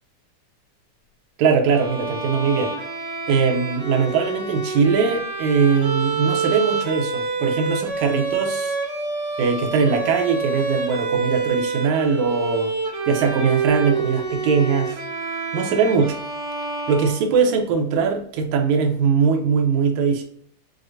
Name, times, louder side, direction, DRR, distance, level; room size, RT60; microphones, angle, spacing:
voice 1, 1.4-2.8 3.3-8.8 9.4-12.7 13.1-15.0 15.5-16.2 16.9-20.2, right 5 dB, 80° right, 1.9 m, -21 dB
Bowed string instrument, 1.7-17.6, right 4 dB, 55° right, 1.3 m, -27 dB
6.3 x 2.1 x 2.4 m
omnidirectional pair, 3.8 m